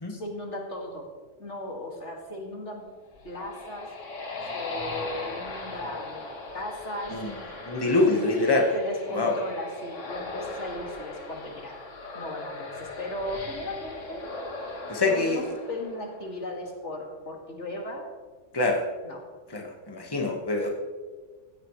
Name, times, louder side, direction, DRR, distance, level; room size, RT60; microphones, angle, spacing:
voice 1, 0.1-1.0 1.4-2.8 3.2-3.9 4.5-6.3 6.5-7.1 8.0-8.2 8.7-11.8 12.1-14.2 15.0-18.1 19.0-19.2, left 1 dB, 70° left, 0 dB, 2.7 m, -36 dB
sound 1, 3.0-16.5, left 3 dB, 85° left, 2.1 m, -39 dB
voice 2, 7.6-8.7 9.1-9.4 14.9-15.4 18.5-18.8 19.5-20.7, left 2 dB, 20° left, 0 dB, 1.6 m, -24 dB
15.5 x 15.0 x 3.2 m, 1.4 s
omnidirectional pair, 1.2 m